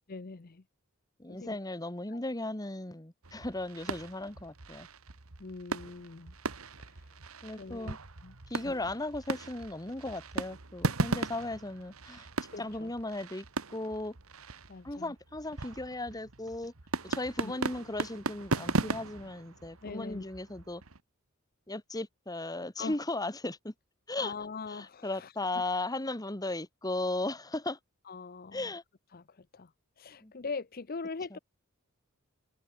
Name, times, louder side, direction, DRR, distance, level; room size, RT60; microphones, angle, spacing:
voice 1, 0.1-0.6 1.3-1.6 2.1-2.3 5.4-6.3 6.8-7.1 7.6-8.3 8.6-8.8 12.5-12.9 14.7-15.1 17.4-17.6 19.8-20.3 22.8-23.0 24.2-25.6 28.0-28.7 29.1-31.4, left 4 dB, 45° left, 0.7 m, -42 dB
voice 2, 1.2-4.9 7.4-8.0 8.5-12.3 12.6-13.4 13.7-14.1 14.8-16.7 17.0-20.8 21.7-23.7 24.1-24.3 24.7-27.8 28.5-28.8 30.2-30.3 31.3-31.4, left 2 dB, 20° left, 1.5 m, -36 dB
sound 1, 3.2-21.0, right 3 dB, 80° right, 1.8 m, -37 dB
head